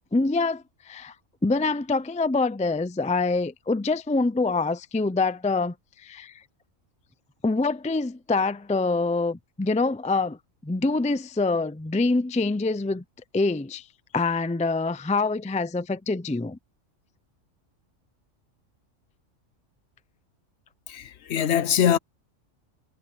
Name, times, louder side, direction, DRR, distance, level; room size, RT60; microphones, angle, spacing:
voice 1, 0.1-1.1 1.4-6.4 7.4-10.4 10.6-13.0 13.3-13.9 14.1-16.6, left 3 dB, 10° left, 0.4 m, -25 dB
voice 2, 20.9-22.0, left 9 dB, 65° left, 0.8 m, -23 dB
omnidirectional pair, 1.3 m